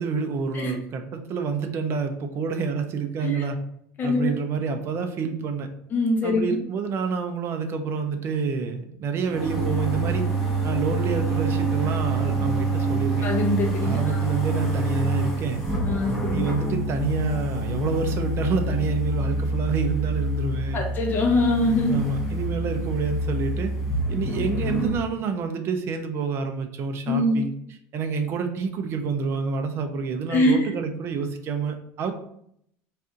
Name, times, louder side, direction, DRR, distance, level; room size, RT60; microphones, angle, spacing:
voice 1, 0.0-3.6 4.0-5.7 6.2-10.3 10.6-13.3 13.8-15.6 16.3-20.8 21.9-23.7 24.1-27.5 27.9-32.1, right 5 dB, 40° right, 6 dB, 0.5 m, -28 dB
voice 2, 4.0-4.3 5.9-6.6 13.2-14.2 15.8-16.4 20.7-22.0 27.1-27.4 30.3-30.7, left 1 dB, 30° left, 0 dB, 0.8 m, -23 dB
sound 1, 9.2-25.0, right 2 dB, 5° right, 1.1 m, -26 dB
4.1 x 2.6 x 3.6 m, 0.70 s
cardioid pair, 150°, 7 cm